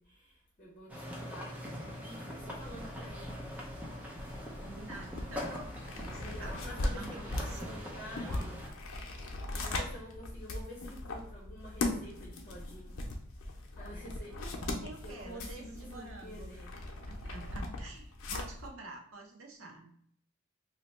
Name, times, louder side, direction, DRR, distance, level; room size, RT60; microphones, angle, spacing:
voice 1, 0.0-1.6 2.0-3.3 5.3-5.6 6.0-8.6 9.5-13.0 13.8-14.4 15.0-16.7, left 1 dB, 40° left, -4 dB, 0.7 m, -49 dB
sound 1, 0.9-8.7, equal, 10° right, 0.5 m, -42 dB
sound 2, 2.4-18.7, left 2 dB, 85° left, 0.6 m, -40 dB
voice 2, 4.4-5.6 5.8-7.8 14.3-14.5 14.8-16.6 17.1-19.9, right 3 dB, 85° right, 2 dB, 0.7 m, -48 dB
2.8 x 2.1 x 4.0 m, 0.65 s
head